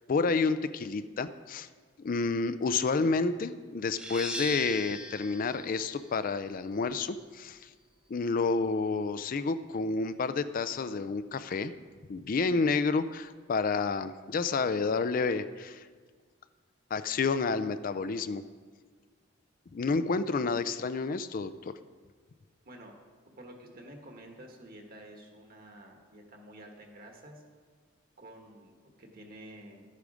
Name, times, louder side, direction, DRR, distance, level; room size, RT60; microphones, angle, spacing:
voice 1, 0.1-1.7 2.0-7.7 8.1-11.7 12.1-15.9 16.9-18.4 19.7-21.7, left 4 dB, 45° left, 12 dB, 0.4 m, -30 dB
sound 1, 4.0-9.4, equal, 5° right, 0.9 m, -42 dB
voice 2, 23.4-27.4 28.2-29.8, right 1 dB, 50° right, 2 dB, 1.6 m, -50 dB
12.0 x 8.3 x 5.0 m, 1.5 s
head